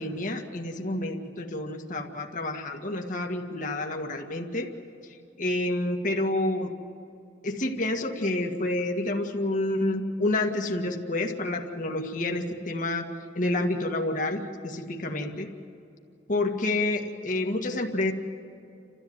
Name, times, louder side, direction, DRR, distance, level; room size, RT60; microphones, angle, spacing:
voice 1, 0.0-4.7 5.4-6.7 7.4-13.1 13.4-15.5 16.3-18.1, left 2 dB, 45° left, 2 dB, 1.9 m, -29 dB
30.0 x 14.0 x 9.5 m, 2.6 s
head